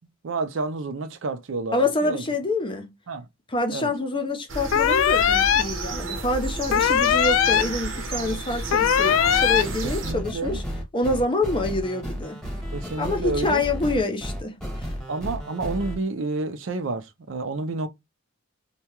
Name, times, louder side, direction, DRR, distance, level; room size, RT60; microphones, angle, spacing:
voice 1, 0.2-2.2 3.1-3.2 3.7-3.9 9.8-10.6 12.7-13.6 15.1-17.9, right 3 dB, 70° right, 0.5 m, -29 dB
voice 2, 1.7-2.9 3.5-10.6 10.9-12.4 13.0-14.9, left 2 dB, 25° left, 0.6 m, -26 dB
sound 1, 4.5-10.1, right 2 dB, 90° right, 1.0 m, -31 dB
sound 2, 4.7-5.6 6.7-7.6 8.7-9.6, left 9 dB, 85° left, 0.3 m, -19 dB
sound 3, 9.2-16.0, equal, 5° left, 1.1 m, -33 dB
2.8 x 2.3 x 2.9 m
head